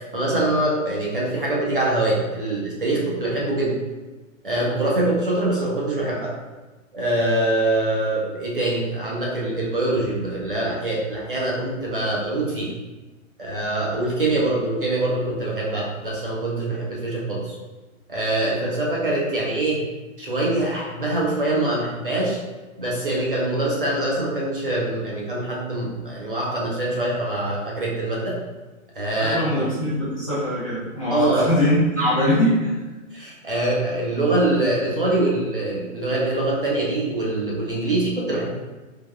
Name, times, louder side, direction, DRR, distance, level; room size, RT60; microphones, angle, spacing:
voice 1, 0.1-3.7 4.4-6.3 6.9-12.7 13.4-17.5 18.1-19.8 20.2-22.4 22.8-28.4 29.0-29.4 31.1-31.5 32.0-32.1 33.1-38.5, right 2 dB, 40° right, -4 dB, 0.5 m, -24 dB
voice 2, 29.2-32.7, left 1 dB, 25° left, -11 dB, 0.6 m, -22 dB
3.3 x 2.2 x 2.2 m, 1.2 s
hypercardioid pair, 180°, 40 cm